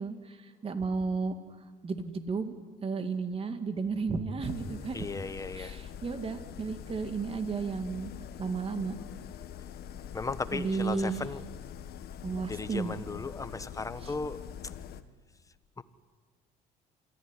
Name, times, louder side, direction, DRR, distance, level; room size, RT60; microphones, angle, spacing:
voice 1, 0.0-1.4 1.8-2.6 2.8-5.1 5.5-8.1 8.4-8.9 10.5-11.2 12.2-12.9, right 4 dB, 35° right, 7 dB, 2.3 m, -33 dB
sound 1, 4.4-15.0, left 9 dB, 70° left, 1.3 m, -44 dB
voice 2, 4.9-5.8 10.1-11.4 12.5-14.4 15.8-15.9, left 4 dB, 20° left, 12 dB, 1.2 m, -36 dB
26.5 x 15.0 x 9.9 m, 1.5 s
cardioid pair, 110°, 17 cm